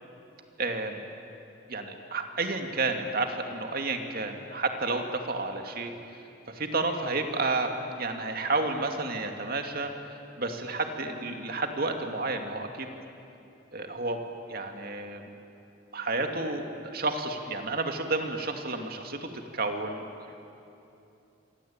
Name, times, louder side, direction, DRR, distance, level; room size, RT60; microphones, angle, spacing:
voice 1, 0.6-1.0 1.7-5.9 6.5-9.9 10.4-12.9 13.7-14.2 14.5-15.3 15.9-20.0, right 3 dB, 50° right, 5 dB, 2.4 m, -31 dB
27.5 x 23.5 x 8.9 m, 2.7 s
head